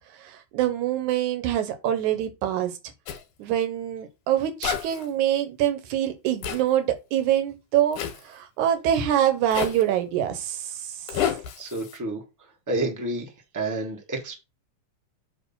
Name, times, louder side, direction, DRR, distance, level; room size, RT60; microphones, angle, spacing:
voice 1, 0.2-2.7 3.4-8.0 8.2-10.9, right 11 dB, 80° right, 2.4 m, -25 dB
Zipper (clothing), 3.1-3.2 4.6-5.1 6.4-6.6 7.9-8.2 9.5-9.8 11.1-12.0, left 9 dB, 85° left, 2.6 m, -29 dB
voice 2, 11.6-12.2 12.7-14.3, right 2 dB, 15° right, 0.6 m, -30 dB
7.8 x 2.9 x 5.5 m
omnidirectional pair, 3.5 m